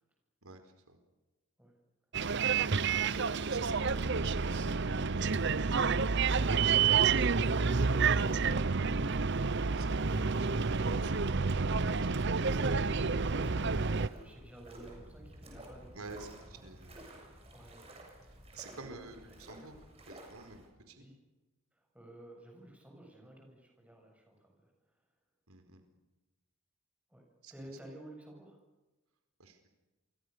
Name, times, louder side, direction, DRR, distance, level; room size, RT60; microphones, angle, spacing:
voice 1, 0.4-1.0 2.4-5.5 9.7-10.7 15.9-16.9 18.3-19.7 20.1-20.6 20.9-21.1 25.5-25.8 27.4-27.5 29.4-29.7, right 3 dB, 90° right, 7 dB, 4.7 m, -51 dB
Bus, 2.1-14.1, right 5 dB, 55° right, 0.8 m, -29 dB
voice 2, 7.9-8.4 13.0-16.6 17.5-17.9 18.7-19.1 21.0-21.1 21.7-24.7 27.1-28.6, right 1 dB, 5° right, 1 dB, 7.7 m, -53 dB
sound 1, 9.9-20.7, right 1 dB, 30° right, 7.1 m, -54 dB
29.0 x 24.0 x 6.9 m, 1.1 s
head